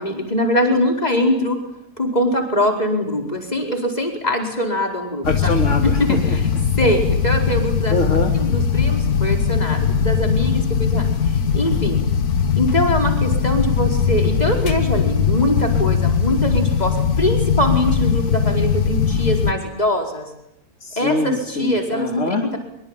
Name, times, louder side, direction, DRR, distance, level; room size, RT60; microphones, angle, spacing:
voice 1, 0.0-1.6 2.0-5.3 6.0-6.4 6.8-8.0 8.3-11.1 11.5-12.0 12.6-20.3 21.0-22.6, equal, 25° left, 2 dB, 5.1 m, -22 dB
sound 1, 5.2-19.5, left 7 dB, 80° left, 1.9 m, -19 dB
voice 2, 5.2-6.4 7.9-8.3 20.8-22.4, left 2 dB, 50° left, 4 dB, 2.9 m, -23 dB
25.0 x 24.5 x 9.2 m, 0.81 s
omnidirectional pair, 1.6 m